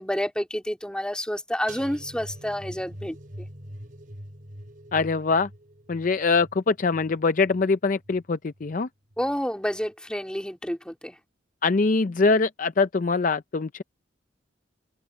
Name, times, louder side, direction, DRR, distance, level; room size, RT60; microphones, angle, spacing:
voice 1, 0.0-3.5 9.2-11.2, equal, 5° left, 2.9 m, -29 dB
sound 1, 1.7-8.7 9.1-9.4 9.7-9.9, equal, 45° right, 5.5 m, -44 dB
voice 2, 4.9-5.5 5.9-8.9 11.6-13.8, left 4 dB, 45° left, 0.5 m, -23 dB
open air
head